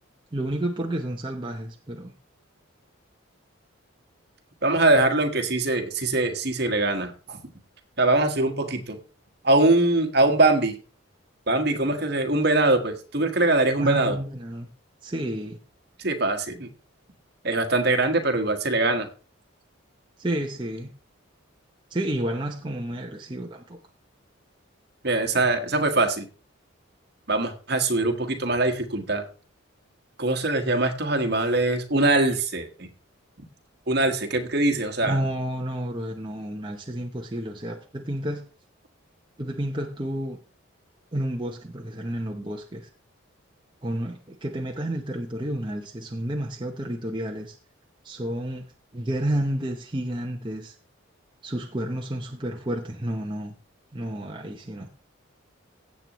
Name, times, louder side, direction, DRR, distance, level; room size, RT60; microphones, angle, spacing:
voice 1, 0.3-2.1 13.8-14.7 15.0-15.6 20.2-20.9 21.9-23.8 35.0-38.4 39.4-40.4 41.1-42.9 43.8-47.6 48.0-48.7 48.9-50.8 51.4-53.5 53.9-54.9, right 1 dB, 20° right, 1 dB, 0.8 m, -30 dB
voice 2, 4.6-7.4 8.0-9.0 9.4-10.8 11.5-14.2 16.0-16.7 17.4-19.1 25.0-26.2 27.3-29.2 30.2-32.9 33.9-35.2, right 2 dB, 50° right, 6 dB, 1.5 m, -22 dB
16.5 x 7.6 x 3.1 m, 0.37 s
head